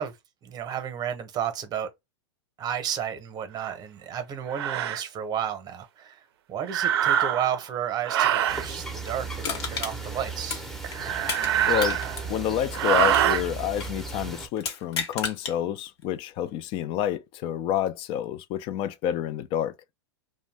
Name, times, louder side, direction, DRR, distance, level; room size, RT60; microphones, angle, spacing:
voice 1, 0.0-1.9 2.6-10.6, right 9 dB, 30° right, 0.8 m, -32 dB
sound 1, 3.6-3.7 4.5-5.0 6.6-7.6 8.0-8.7 10.8-12.3 12.7-13.4, right 10 dB, 65° right, 0.5 m, -24 dB
sound 2, 8.5-14.5, right 3 dB, ahead, 0.7 m, -36 dB
Crushing, 9.4-11.5 11.8-14.0 14.6-15.6 16.0-16.1, left 5 dB, 70° left, 1.0 m, -33 dB
voice 2, 11.6-12.0 12.3-19.7, left 10 dB, 40° left, 0.4 m, -28 dB
2.5 x 2.1 x 3.2 m
hypercardioid pair, 110°, 14 cm